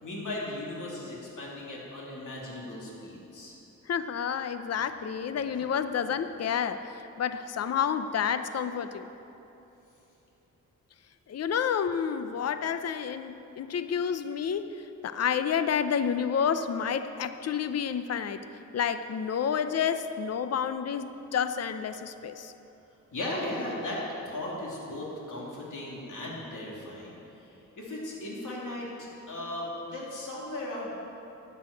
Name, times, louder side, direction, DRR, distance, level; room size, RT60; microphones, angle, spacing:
voice 1, 0.0-3.5 23.1-30.9, left 1 dB, 70° left, -4 dB, 3.1 m, -37 dB
voice 2, 3.9-9.1 11.3-18.4 18.7-22.5, left 7 dB, 50° left, 10 dB, 0.6 m, -30 dB
11.5 x 8.4 x 9.0 m, 3.0 s
wide cardioid pair, 90°, 32 cm